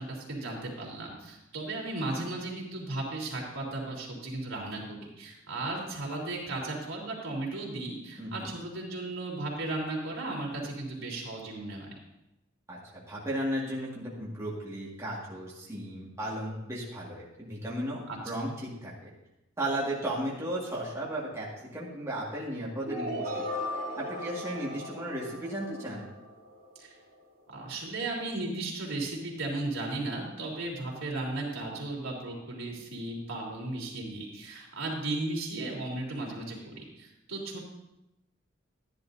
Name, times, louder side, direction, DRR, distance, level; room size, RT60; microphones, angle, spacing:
voice 1, 0.0-11.9 18.1-18.2 26.8-26.9 27.5-37.6, right 2 dB, 75° right, -2 dB, 3.4 m, -35 dB
voice 2, 8.2-8.5 12.7-18.9 19.6-21.5 21.7-23.4 24.0-26.1, right 1 dB, 15° right, -7 dB, 2.1 m, -35 dB
sound 1, 22.9-26.8, left 1 dB, 50° right, 2.9 m, -37 dB
14.5 x 10.5 x 2.8 m, 0.90 s
head